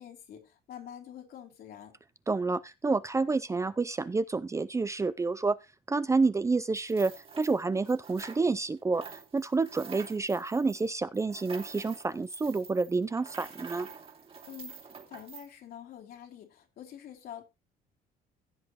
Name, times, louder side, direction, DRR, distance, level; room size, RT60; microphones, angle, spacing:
voice 1, 0.0-2.0 14.5-17.4, left 10 dB, 65° left, 3.1 m, -46 dB
voice 2, 2.3-5.6 5.9-13.9, right 3 dB, 15° right, 0.5 m, -29 dB
sound 1, 6.7-8.7 8.9-15.5, right 6 dB, 35° right, 2.5 m, -47 dB
15.5 x 7.6 x 3.0 m
cardioid pair, 110°, 17 cm